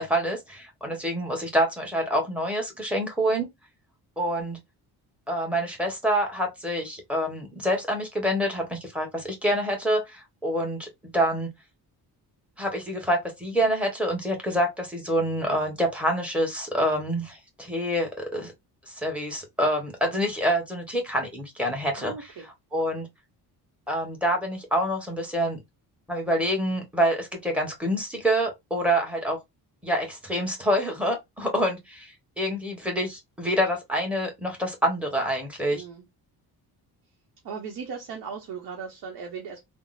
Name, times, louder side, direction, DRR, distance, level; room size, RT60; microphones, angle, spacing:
voice 1, 0.0-3.5 4.2-4.6 5.3-10.9 11.1-11.5 12.6-18.5 18.9-22.3 22.7-23.1 23.9-25.6 26.1-29.4 29.8-35.8, equal, 5° right, 0.9 m, -26 dB
voice 2, 21.9-22.4 35.7-36.0 37.4-39.6, right 6 dB, 65° right, 0.9 m, -37 dB
3.6 x 2.0 x 2.4 m
cardioid pair, 140°, 39 cm